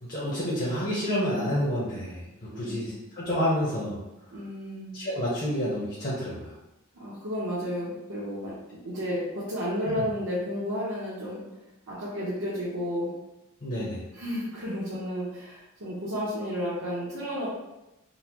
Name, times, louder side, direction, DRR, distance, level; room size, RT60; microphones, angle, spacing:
voice 1, 0.0-4.0 4.9-6.5 9.8-10.0 13.6-14.0, equal, 40° left, -7 dB, 0.7 m, -29 dB
voice 2, 2.5-2.9 4.3-4.9 6.9-8.5 8.8-11.4 11.9-13.1 14.1-17.5, equal, 85° right, -9 dB, 0.8 m, -32 dB
3.8 x 2.0 x 2.9 m, 0.96 s
head